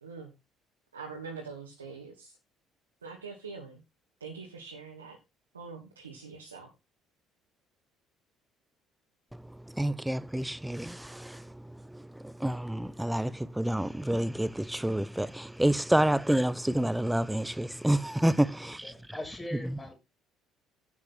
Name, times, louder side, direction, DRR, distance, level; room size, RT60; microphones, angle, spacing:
voice 1, 0.0-0.3 0.9-2.3 3.0-3.8 4.2-5.2 5.5-6.7, right 5 dB, 85° right, 2.1 m, -43 dB
voice 2, 9.7-11.6 11.9-18.9 19.7-19.8, right 1 dB, 5° right, 0.9 m, -28 dB
voice 3, 18.6-19.9, left 1 dB, 15° left, 6.4 m, -41 dB
11.5 x 8.6 x 4.2 m
figure-of-eight pair, 55°, 0 cm